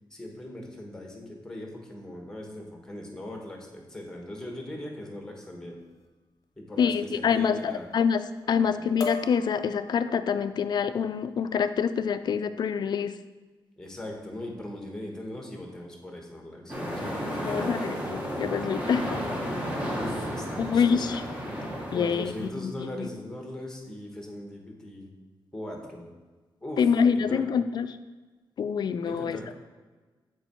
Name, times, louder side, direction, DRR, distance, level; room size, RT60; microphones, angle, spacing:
voice 1, 0.1-5.8 6.6-7.9 8.5-8.9 13.8-18.2 20.0-21.2 21.9-25.1 25.5-26.0 26.6-27.5 29.0-29.5, left 1 dB, 5° left, 0 dB, 1.3 m, -40 dB
sound 1, 5.8-6.1 6.8-7.1 7.5-8.0 8.4-8.6 9.0-10.3 10.9-11.2 11.5-11.9, left 5 dB, 40° left, 0.8 m, -39 dB
voice 2, 6.8-8.2 8.5-13.2 17.4-19.2 20.6-21.2 21.9-23.1 26.8-28.0 28.6-29.5, left 6 dB, 55° left, 11 dB, 0.4 m, -26 dB
sound 2, 16.7-22.5, equal, 15° right, 1.2 m, -33 dB
7.0 x 4.5 x 4.3 m, 1.3 s
wide cardioid pair, 130°, 9 cm